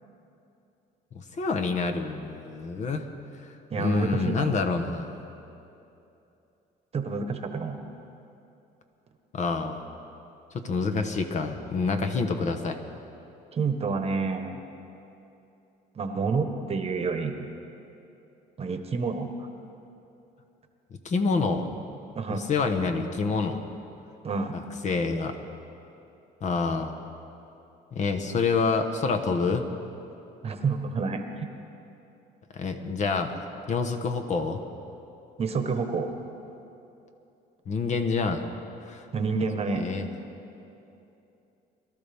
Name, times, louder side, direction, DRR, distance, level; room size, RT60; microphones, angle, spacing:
voice 1, 1.1-3.1 3.8-5.1 9.3-9.9 10.5-12.8 21.0-21.7 22.3-23.6 24.8-25.4 26.4-26.9 27.9-29.6 32.5-33.3 33.7-34.6 37.7-38.4 38.9-39.0 39.8-40.1, left 4 dB, 45° left, 5 dB, 1.1 m, -27 dB
voice 2, 3.7-4.5 6.9-7.8 13.5-14.6 15.9-17.5 18.6-19.3 22.1-22.5 24.2-24.5 30.4-31.5 35.4-36.1 39.1-39.9, right 4 dB, 35° right, 6 dB, 1.2 m, -28 dB
22.5 x 12.5 x 3.5 m, 2.8 s
cardioid pair, 110°, 17 cm